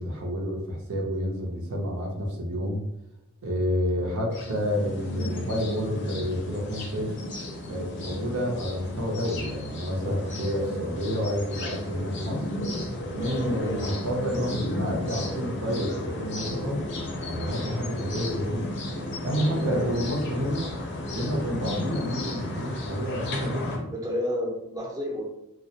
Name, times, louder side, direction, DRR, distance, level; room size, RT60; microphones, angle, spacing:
voice 1, 0.0-2.8 3.4-7.1 7.7-12.5 13.1-16.8 17.3-18.7 19.2-20.7 21.1-23.9, equal, 80° right, -1 dB, 0.6 m, -29 dB
sound 1, 4.3-23.8, left 1 dB, 55° left, 0.4 m, -33 dB
voice 2, 13.3-13.9 19.0-19.3 19.6-19.9 23.9-25.2, equal, 15° right, -2 dB, 0.5 m, -32 dB
2.2 x 2.1 x 2.7 m, 0.88 s
head